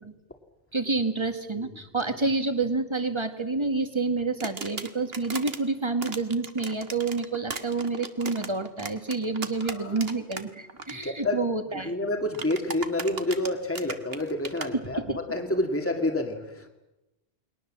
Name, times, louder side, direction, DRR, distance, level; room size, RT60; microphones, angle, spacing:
voice 1, 0.7-11.9 15.0-15.2, right 3 dB, 25° right, 8 dB, 1.9 m, -28 dB
sound 1, 4.4-5.6 6.0-10.4 10.7-10.9 12.3-14.7, right 4 dB, 65° right, 1.9 m, -36 dB
voice 2, 9.6-10.0 10.9-11.4 11.7-16.7, left 1 dB, 10° left, 4 dB, 2.1 m, -29 dB
29.5 x 22.0 x 7.5 m, 0.97 s
omnidirectional pair, 1.1 m